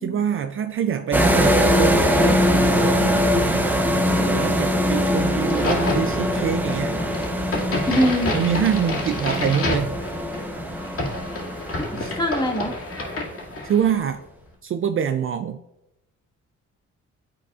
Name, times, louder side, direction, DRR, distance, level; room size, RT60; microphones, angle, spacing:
voice 1, 0.0-3.7 4.3-7.0 8.3-10.0 12.0-12.2 13.6-14.2 14.6-15.6, right 8 dB, 45° right, 9 dB, 0.4 m, -25 dB
sound 1, 1.1-13.2, equal, 5° right, 0.8 m, -22 dB
Crack, 5.4-14.0, left 2 dB, 50° left, 2.1 m, -29 dB
voice 2, 7.9-8.3 11.8-12.7, equal, 15° left, 0 dB, 1.5 m, -23 dB
9.9 x 4.0 x 2.4 m, 0.88 s
cardioid pair, 90°, 30 cm